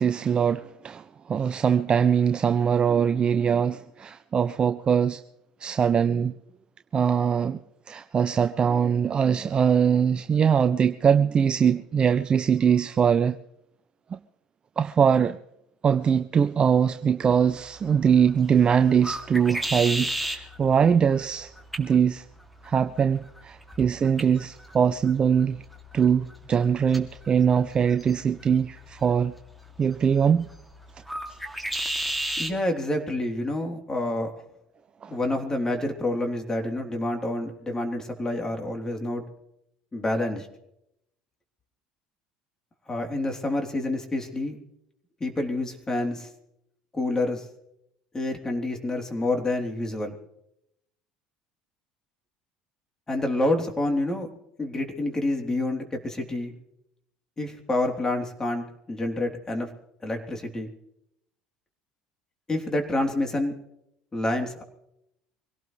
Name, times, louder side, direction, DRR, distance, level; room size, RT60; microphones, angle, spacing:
voice 1, 0.0-5.2 5.6-6.3 6.9-7.6 7.9-13.4 14.1-14.2 14.8-15.4 15.8-21.5 21.8-22.2 22.6-25.6 25.9-29.3 29.8-30.5 35.0-35.1, right 7 dB, 35° right, 0.6 m, -22 dB
sound 1, 17.2-32.6, right 1 dB, ahead, 2.5 m, -36 dB
voice 2, 32.4-34.3 35.1-39.2 39.9-40.5 42.9-44.6 45.2-46.3 46.9-47.5 48.1-50.1 53.1-54.3 54.6-56.5 57.4-59.7 60.0-60.7 62.5-63.5 64.1-64.6, left 2 dB, 20° left, 3.4 m, -28 dB
25.0 x 17.5 x 3.3 m
hypercardioid pair, 65°, 3 cm